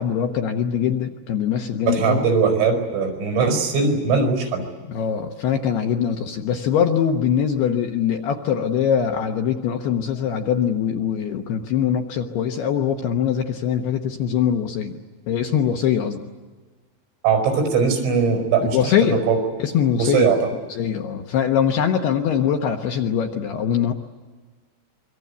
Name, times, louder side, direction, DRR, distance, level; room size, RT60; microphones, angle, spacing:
voice 1, 0.0-2.3 4.9-15.0 15.3-16.2 18.7-19.2 19.6-20.4 20.7-23.9, left 8 dB, 70° left, 4 dB, 2.6 m, -22 dB
voice 2, 1.9-4.7 17.2-19.4 20.0-20.4, right 5 dB, 85° right, 5 dB, 7.4 m, -20 dB
25.5 x 24.0 x 8.3 m, 1.3 s
omnidirectional pair, 5.7 m